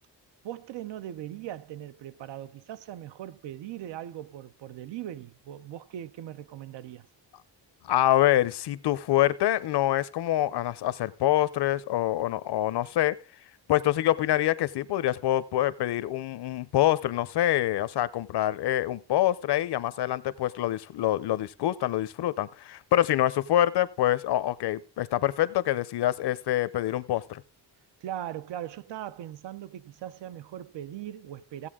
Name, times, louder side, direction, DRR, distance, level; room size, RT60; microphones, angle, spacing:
voice 1, 0.4-7.1 28.0-31.7, right 12 dB, 90° right, 0.7 m, -39 dB
voice 2, 7.9-13.2 13.7-27.4, left 13 dB, 70° left, 0.7 m, -26 dB
16.0 x 8.2 x 3.6 m
wide cardioid pair, 165°, 41 cm